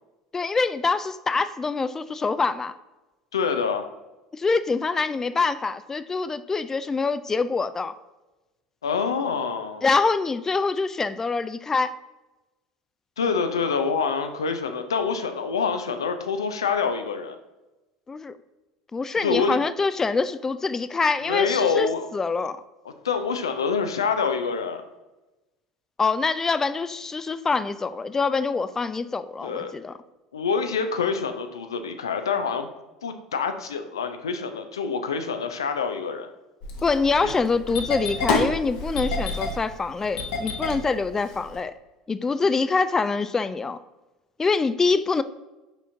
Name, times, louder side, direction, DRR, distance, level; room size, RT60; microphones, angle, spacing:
voice 1, 0.3-2.7 4.3-7.9 9.8-11.9 18.1-18.3 18.9-22.6 26.0-29.9 36.8-41.7 42.1-43.8 44.4-45.2, left 4 dB, 20° left, 14 dB, 0.3 m, -25 dB
voice 2, 3.3-3.9 8.8-9.9 13.2-17.4 19.2-19.7 21.2-22.1 23.0-24.8 29.4-29.7 30.3-32.7 33.0-36.3 37.2-37.3, left 5 dB, 75° left, 7 dB, 0.5 m, -26 dB
Engine starting, 36.6-41.6, left 3 dB, 60° left, 1.1 m, -28 dB
7.1 x 5.6 x 2.7 m, 1.1 s
figure-of-eight pair, 70°, 2 cm